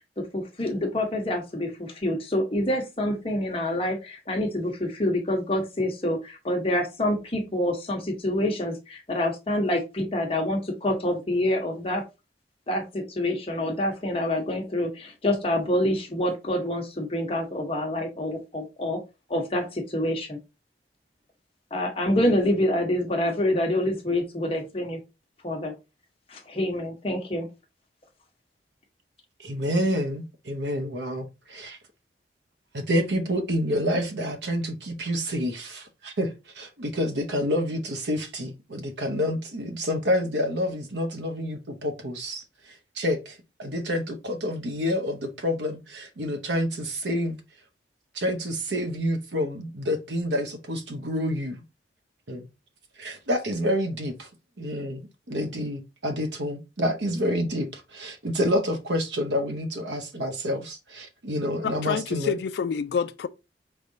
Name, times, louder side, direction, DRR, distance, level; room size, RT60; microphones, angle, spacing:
voice 1, 0.2-12.0 12.7-19.0 19.3-20.4 21.7-25.0 25.4-25.7 26.3-27.5, left 1 dB, 30° left, 1.0 m, -27 dB
voice 2, 29.4-31.8 32.7-47.4 48.1-51.6 52.3-52.5 53.0-54.3 54.6-62.4, equal, 75° right, 0.9 m, -28 dB
voice 3, 61.6-63.3, left 6 dB, 65° left, 0.3 m, -28 dB
4.8 x 3.3 x 2.7 m
head